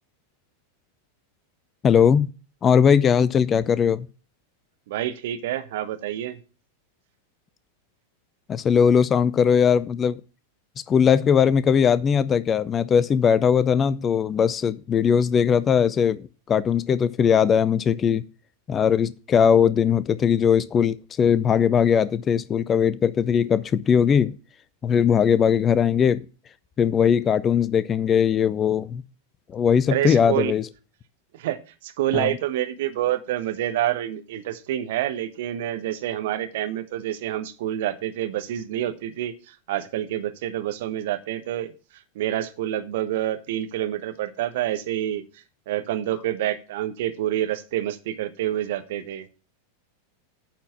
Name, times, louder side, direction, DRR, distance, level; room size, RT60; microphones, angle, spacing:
voice 1, 1.8-2.3 2.6-4.1 8.5-10.2 10.9-18.2 18.7-24.4 24.8-26.2 26.8-29.0 29.5-30.6 32.1-32.4, left 7 dB, 25° left, 0.4 m, -20 dB
voice 2, 4.9-6.4 29.9-30.5 31.3-41.7 42.1-45.2 45.7-49.3, right 12 dB, 55° right, 1.0 m, -27 dB
9.3 x 4.5 x 7.0 m
figure-of-eight pair, 90°, 0 cm